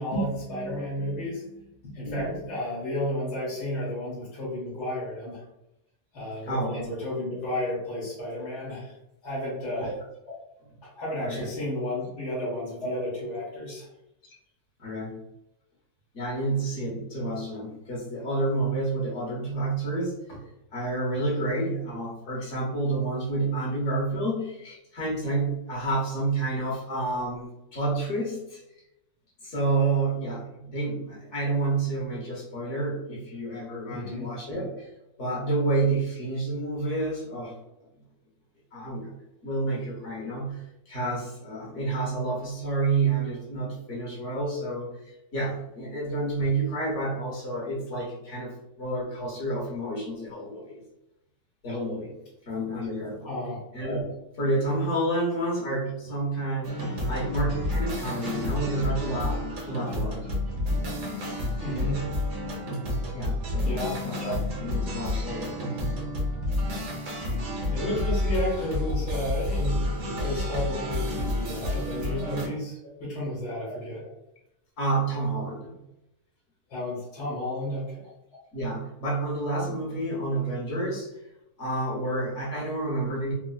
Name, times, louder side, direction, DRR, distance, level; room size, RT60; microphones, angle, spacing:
voice 1, 0.0-5.4 6.1-8.9 9.2-9.9 10.8-13.9 33.9-34.3 53.2-53.6 58.2-58.3 61.6-62.1 63.6-64.0 67.7-74.0 76.7-78.0, left 1 dB, 85° left, -9 dB, 2.1 m, -32 dB
voice 2, 2.0-2.4 6.4-6.9 9.8-9.9 11.2-11.5 12.4-12.5 12.8-13.1 14.8-15.2 16.1-20.4 20.7-28.6 29.4-34.9 35.2-37.5 38.7-39.1 39.4-48.5 48.8-50.8 51.6-52.1 52.5-53.4 53.7-54.1 54.3-60.3 63.1-65.7 72.0-72.4 72.8-72.9 74.8-75.8 78.5-81.1 81.6-83.3, right 2 dB, 50° left, -4 dB, 1.5 m, -29 dB
sound 1, 56.6-72.5, left 1 dB, 80° right, 1.5 m, -30 dB
4.7 x 2.2 x 2.3 m, 0.85 s
omnidirectional pair, 1.8 m